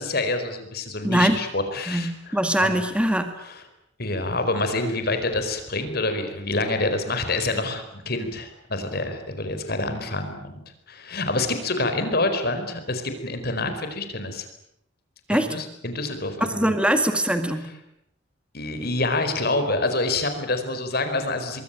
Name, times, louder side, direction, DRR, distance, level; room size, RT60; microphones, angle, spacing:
voice 1, 0.0-2.7 3.4-3.6 4.0-10.6 10.9-14.5 15.3-16.7 18.5-21.6, left 2 dB, 50° left, 8 dB, 4.6 m, -27 dB
voice 2, 1.0-1.4 1.9-3.3 15.3-15.5 16.4-17.7, right 1 dB, 5° right, 7 dB, 2.0 m, -22 dB
25.0 x 22.5 x 9.0 m, 0.76 s
head